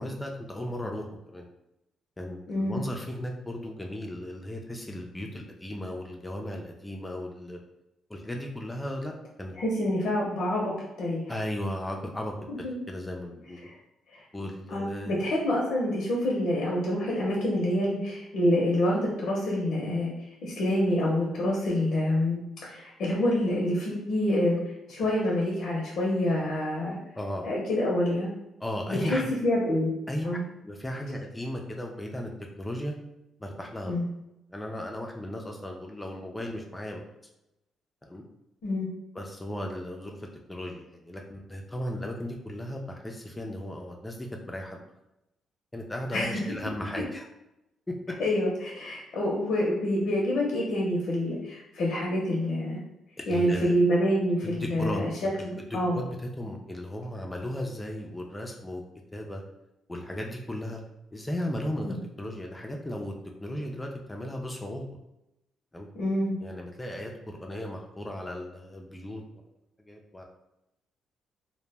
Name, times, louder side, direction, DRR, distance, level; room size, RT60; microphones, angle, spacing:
voice 1, 0.0-1.5 2.2-7.6 8.1-9.1 9.4-9.5 11.3-13.6 14.3-15.1 27.2-27.5 28.6-29.3 30.1-32.3 32.6-32.9 33.4-33.9 34.5-37.0 38.0-38.2 39.1-44.8 45.7-47.3 53.2-53.8 54.4-55.0 55.6-58.8 59.1-59.4 59.9-60.8 61.1-63.1 63.4-64.9 65.7-65.9 66.4-69.2 69.9-70.2, left 1 dB, 15° left, 1 dB, 0.3 m, -36 dB
voice 2, 9.6-10.7 11.0-11.3 12.5-12.7 13.6-13.7 14.1-14.2 14.7-20.1 20.4-24.6 24.9-27.0 27.4-28.3 28.9-29.9 30.2-30.4 33.9-34.0 38.6-38.9 46.1-46.4 48.2-52.8 53.3-56.0 61.8-62.0 66.0-66.3, left 1 dB, 70° left, -4 dB, 0.6 m, -27 dB
2.1 x 2.0 x 3.3 m, 0.89 s
cardioid pair, 90°, 0 cm